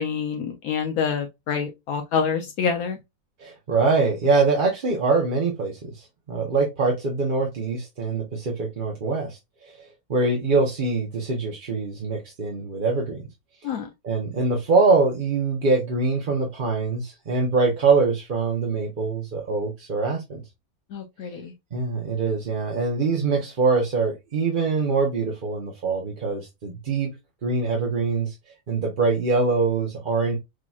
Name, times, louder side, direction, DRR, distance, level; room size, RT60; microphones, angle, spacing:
voice 1, 0.0-3.0 13.6-13.9 20.9-21.5, left 6 dB, 75° left, 1.1 m, -27 dB
voice 2, 3.4-9.4 9.7-9.8 10.1-13.2 14.0-20.4 21.7-27.1 27.4-28.3 28.7-30.4, right 4 dB, 40° right, 0.9 m, -23 dB
6.2 x 2.9 x 2.3 m
omnidirectional pair, 1.6 m